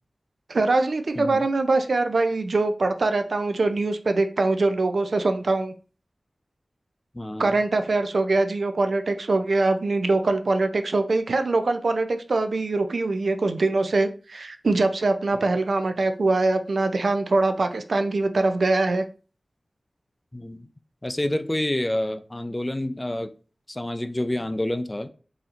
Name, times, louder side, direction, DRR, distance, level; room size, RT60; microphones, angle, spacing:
voice 1, 0.5-5.7 7.4-19.0, right 3 dB, 80° right, 8 dB, 0.4 m, -23 dB
voice 2, 7.1-7.5 20.3-20.7 21.0-23.3 23.7-25.1, left 1 dB, 25° left, 9 dB, 0.4 m, -28 dB
4.1 x 2.8 x 2.4 m, 0.37 s
wide cardioid pair, 65°, 0 cm